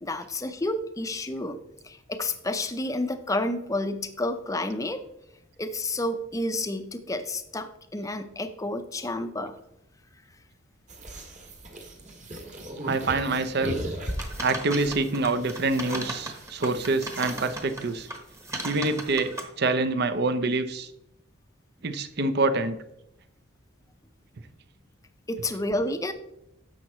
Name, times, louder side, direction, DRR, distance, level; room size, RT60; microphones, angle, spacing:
voice 1, 0.0-1.6 1.8-5.0 5.6-9.6 25.3-26.1, left 1 dB, 15° left, 9 dB, 0.5 m, -30 dB
sound 1, 10.9-18.1, right 1 dB, 35° right, 1.5 m, -38 dB
voice 2, 12.9-13.8 14.4-18.1 18.6-20.9 21.8-22.8, right 3 dB, 50° right, 11 dB, 0.6 m, -26 dB
sound 2, 14.1-17.8 18.1-19.4, right 1 dB, 15° right, 1.1 m, -37 dB
10.5 x 7.2 x 3.1 m, 0.83 s
head